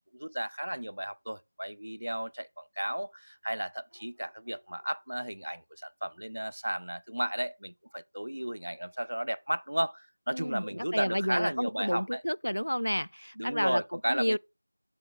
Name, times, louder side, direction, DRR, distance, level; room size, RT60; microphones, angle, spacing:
voice 1, 0.1-12.2 13.4-14.4, right 1 dB, 50° right, 0.4 m, -34 dB
sound 1, 3.9-5.6 8.3-9.4, right 1 dB, 5° right, 1.3 m, -65 dB
voice 2, 10.3-14.4, equal, 80° left, 0.3 m, -31 dB
10.5 x 3.6 x 5.2 m
figure-of-eight pair, 175°, 0 cm